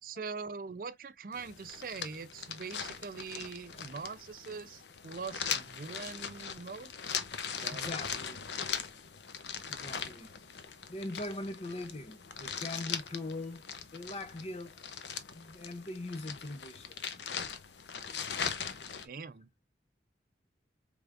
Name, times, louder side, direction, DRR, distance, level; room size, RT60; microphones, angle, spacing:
voice 1, 0.0-6.9 7.5-8.0 19.0-19.5, right 5 dB, 50° right, 0.5 m, -43 dB
sound 1, 1.3-19.1, left 7 dB, 75° left, 0.7 m, -40 dB
voice 2, 7.7-8.5 9.7-10.3 10.9-14.8 15.3-17.0, left 2 dB, 35° left, 0.7 m, -41 dB
4.8 x 3.4 x 2.4 m
head